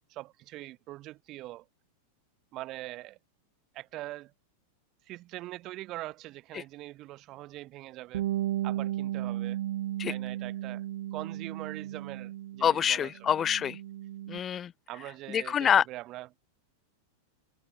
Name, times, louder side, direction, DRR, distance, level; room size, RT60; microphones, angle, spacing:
voice 1, 0.1-1.7 2.5-3.2 3.7-4.3 5.1-8.2 8.6-9.6 10.1-10.9 11.1-13.3 14.9-16.3, right 17 dB, 35° right, 2.2 m, -42 dB
Bass guitar, 8.1-12.9 13.2-14.4, right 13 dB, 60° right, 1.1 m, -34 dB
voice 2, 12.6-13.8 14.3-14.7 15.3-15.8, left 8 dB, 25° left, 0.5 m, -26 dB
figure-of-eight pair, 90°, 0 cm